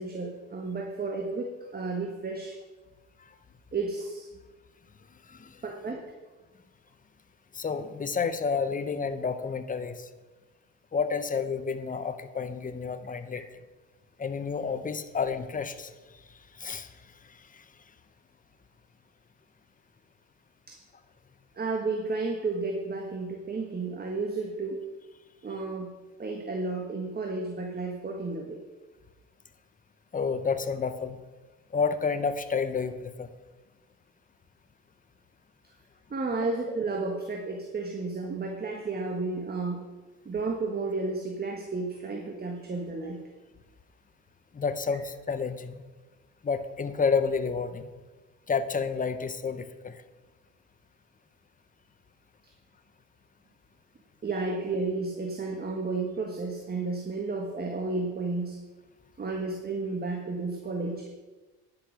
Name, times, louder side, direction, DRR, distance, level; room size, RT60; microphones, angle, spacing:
voice 1, 0.0-2.6 3.7-4.3 5.6-6.0 20.7-20.8 21.5-24.8 25.4-25.9 26.2-28.6 36.1-39.8 40.2-43.2 54.2-58.6 59.2-61.1, right 3 dB, 30° right, 2 dB, 1.5 m, -32 dB
voice 2, 5.3-5.6 7.5-10.1 10.9-13.4 14.2-15.9 16.3-16.9 17.2-17.6 30.1-31.2 31.7-33.3 44.5-45.8 46.4-47.9 48.5-50.0, left 5 dB, 25° left, 10 dB, 0.9 m, -30 dB
10.0 x 6.9 x 5.9 m, 1.2 s
cardioid pair, 85°, 30 cm